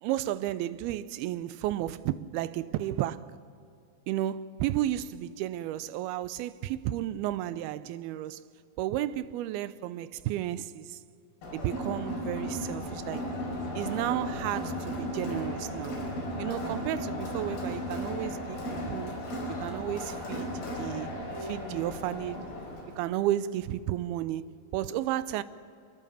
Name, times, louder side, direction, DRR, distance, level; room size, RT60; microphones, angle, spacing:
voice 1, 0.0-3.3 4.1-8.4 8.8-11.0 11.5-13.4 13.8-16.0 16.4-19.1 19.5-20.5 20.8-22.4 23.0-25.4, right 13 dB, 90° right, 2.6 m, -33 dB
Crowd, 11.4-23.0, equal, 90° left, 7.1 m, -35 dB
24.5 x 22.0 x 7.0 m
omnidirectional pair, 4.3 m